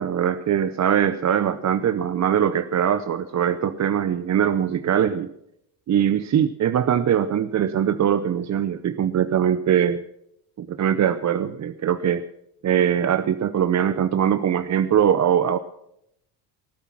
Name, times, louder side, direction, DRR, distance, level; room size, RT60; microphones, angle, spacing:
voice 1, 0.0-5.3 5.9-10.0 10.6-12.2 12.6-15.6, right 9 dB, 35° right, 13 dB, 0.7 m, -21 dB
18.5 x 10.0 x 5.9 m, 0.78 s
supercardioid pair, 85°, 49 cm